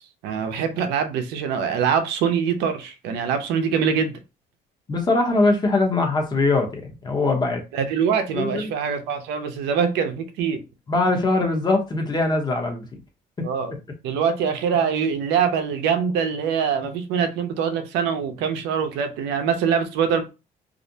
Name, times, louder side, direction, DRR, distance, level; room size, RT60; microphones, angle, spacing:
voice 1, 0.2-4.1 7.7-10.6 13.4-13.7 14.0-20.2, right 7 dB, 90° right, 0.5 m, -23 dB
voice 2, 4.9-7.6 8.3-8.7 10.9-12.9 13.4-13.5, left 2 dB, 25° left, 0.8 m, -22 dB
2.4 x 2.1 x 2.7 m
cardioid pair, 110°, 17 cm